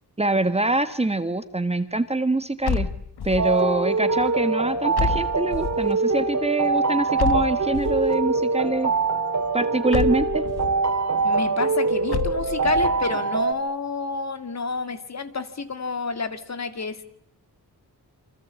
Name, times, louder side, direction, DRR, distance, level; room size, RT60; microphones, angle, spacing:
voice 1, 0.2-2.9 3.2-8.9 9.5-10.4, right 2 dB, 15° right, 11 dB, 1.4 m, -24 dB
sound 1, 2.6-3.6 4.9-5.9 7.2-8.1 9.9-10.8 12.1-13.0, left 6 dB, 80° left, 1.5 m, -29 dB
sound 2, 3.4-13.5, right 4 dB, 45° right, 2.9 m, -23 dB
voice 2, 11.2-17.0, left 4 dB, 45° left, 10 dB, 2.3 m, -29 dB
28.5 x 25.0 x 8.3 m, 0.64 s
wide cardioid pair, 160°, 38 cm